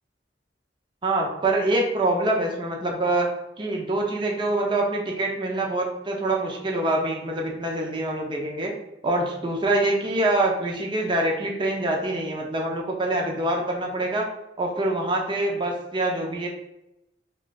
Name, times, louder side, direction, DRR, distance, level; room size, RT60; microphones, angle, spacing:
voice 1, 1.0-3.3 3.6-8.7 9.0-14.3 14.6-16.5, right 2 dB, 30° right, 0 dB, 0.6 m, -25 dB
3.0 x 2.3 x 3.9 m, 0.88 s
head